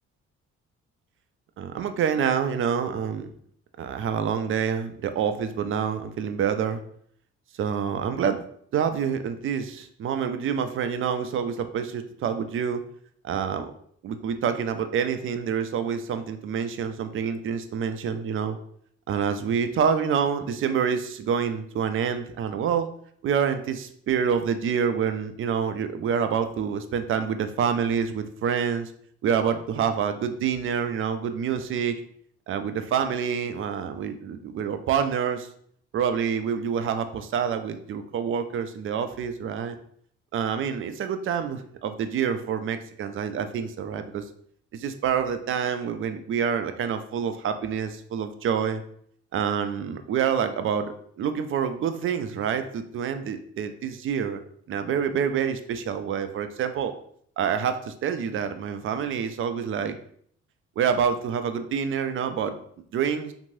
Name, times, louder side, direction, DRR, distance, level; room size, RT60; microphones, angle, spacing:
voice 1, 1.6-3.3 3.8-6.8 7.5-8.5 8.7-12.8 13.2-13.7 14.0-18.6 19.1-22.9 23.2-28.9 29.2-32.0 32.5-35.5 35.9-39.8 40.3-44.2 44.7-48.8 49.3-54.4 54.7-56.9 57.4-60.0 60.8-62.6 62.9-63.3, right 7 dB, 35° right, 9 dB, 0.4 m, -27 dB
2.9 x 2.6 x 2.6 m, 0.64 s
hypercardioid pair, 45°, 36 cm